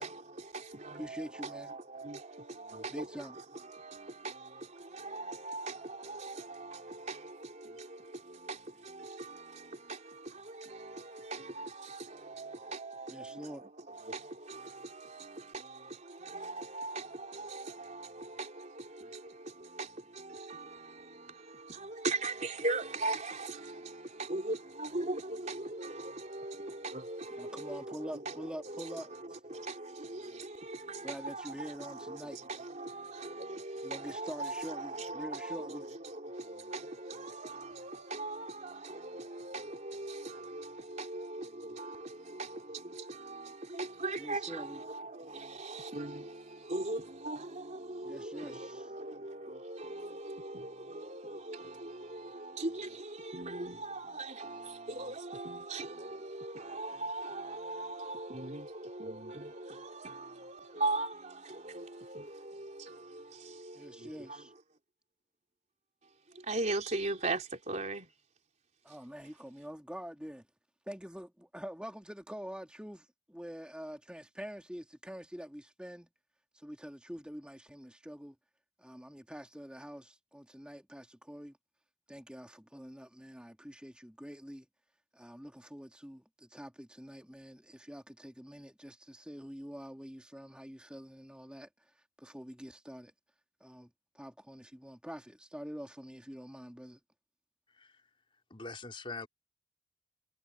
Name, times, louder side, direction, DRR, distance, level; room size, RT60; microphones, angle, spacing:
voice 1, 0.0-64.5 66.3-68.1 68.9-69.0, right 2 dB, 40° right, 4.0 m, -40 dB
voice 2, 1.0-1.7 2.9-3.3 13.1-13.7 27.4-29.4 31.0-32.4 33.8-35.9 44.2-44.8 48.0-48.8 63.7-64.5 68.8-70.5 70.9-76.1 76.5-78.4 78.8-81.6 82.1-84.7 85.1-91.7 92.2-93.1 93.6-97.0, equal, 5° right, 2.0 m, -46 dB
voice 3, 98.5-99.3, left 3 dB, 30° left, 4.2 m, -43 dB
head